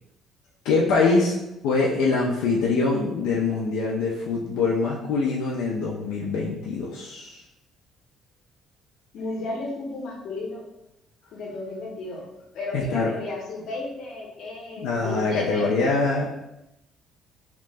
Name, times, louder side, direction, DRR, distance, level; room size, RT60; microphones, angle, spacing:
voice 1, 0.6-1.3 1.6-7.4 12.7-13.1 14.8-16.2, left 3 dB, 85° left, -3 dB, 0.4 m, -24 dB
voice 2, 9.1-10.6 11.2-12.3 12.5-15.7, left 2 dB, 55° left, -2 dB, 0.7 m, -33 dB
2.8 x 2.1 x 3.3 m, 0.89 s
cardioid pair, 175°, 0 cm